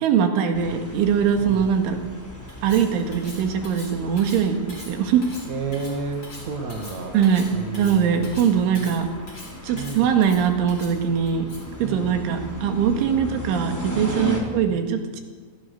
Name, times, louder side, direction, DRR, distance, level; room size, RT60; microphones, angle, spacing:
voice 1, 0.0-2.0 2.6-5.3 7.1-9.1 9.6-11.5 11.8-15.2, right 7 dB, 70° right, 5 dB, 4.2 m, -22 dB
sound 1, 0.5-14.4, equal, 5° left, 3.4 m, -37 dB
Cutlery silverware, 2.5-11.8, left 2 dB, 20° left, 5.1 m, -43 dB
voice 2, 5.5-7.1 7.5-8.4 9.7-10.1 11.8-12.1 13.2-13.3 14.3-14.5, right 4 dB, 55° right, 3 dB, 2.2 m, -32 dB
28.5 x 21.0 x 6.6 m, 1.5 s
omnidirectional pair, 5.8 m